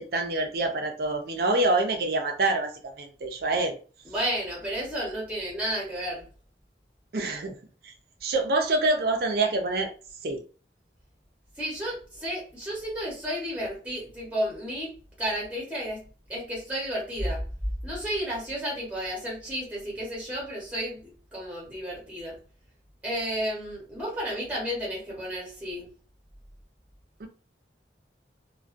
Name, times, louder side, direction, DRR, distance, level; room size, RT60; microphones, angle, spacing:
voice 1, 0.0-2.7 3.0-3.8 7.1-7.6 8.2-9.9 10.2-10.4 27.2-27.3, right 2 dB, 55° right, 4 dB, 0.5 m, -26 dB
voice 2, 4.0-6.3 11.6-17.4 17.8-22.4 23.0-25.9, equal, 10° right, -4 dB, 1.0 m, -32 dB
2.2 x 2.2 x 2.5 m, 0.38 s
head